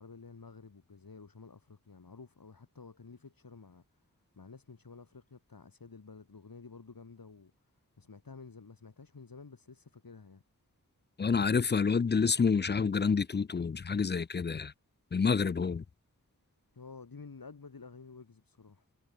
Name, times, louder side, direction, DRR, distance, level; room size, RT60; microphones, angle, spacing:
voice 1, 0.0-3.8 4.3-7.5 8.0-10.4 16.7-18.9, left 4 dB, 85° left, 3.6 m, -51 dB
voice 2, 11.2-14.7 15.1-15.8, left 5 dB, 30° left, 0.4 m, -28 dB
wide cardioid pair, 40°, 34 cm